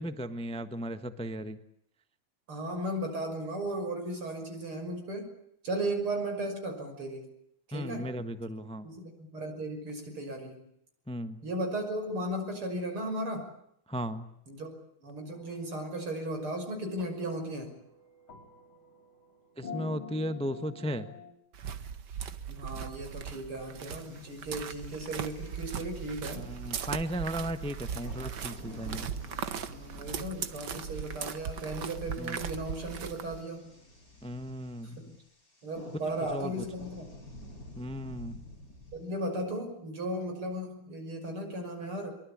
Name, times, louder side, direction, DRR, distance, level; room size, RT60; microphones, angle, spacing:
voice 1, 0.0-1.6 7.7-8.9 11.1-11.4 13.9-14.3 19.6-21.1 26.3-29.1 32.2-32.4 34.2-35.0 36.3-36.5 37.8-38.4, equal, 5° left, 10 dB, 0.9 m, -36 dB
voice 2, 2.5-5.3 5.6-7.3 7.7-8.1 8.8-10.6 11.4-13.5 14.5-14.7 15.0-17.8 22.5-26.5 29.7-33.7 34.8-35.1 35.6-37.1 38.9-42.1, right 1 dB, 80° right, 5 dB, 6.9 m, -36 dB
sound 1, 15.3-21.3, left 4 dB, 70° left, 6.5 m, -48 dB
sound 2, 21.5-33.4, right 8 dB, 55° right, 1.8 m, -39 dB
sound 3, 23.9-39.2, left 1 dB, 40° left, 7.3 m, -50 dB
23.5 x 23.5 x 8.7 m, 0.74 s
omnidirectional pair, 2.3 m